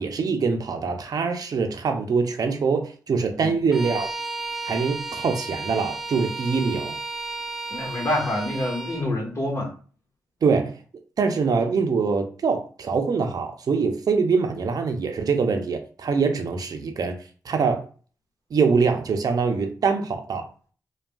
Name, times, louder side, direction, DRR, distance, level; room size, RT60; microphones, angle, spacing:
voice 1, 0.0-4.1 4.7-6.9 10.4-10.8 11.2-17.2 17.4-17.9 18.5-20.7, right 5 dB, 60° right, 0.5 m, -24 dB
Bowed string instrument, 3.7-9.1, right 3 dB, 5° right, 0.7 m, -33 dB
voice 2, 7.7-9.7, left 1 dB, 40° left, 1.3 m, -26 dB
3.3 x 2.3 x 2.3 m
cardioid pair, 50°, 7 cm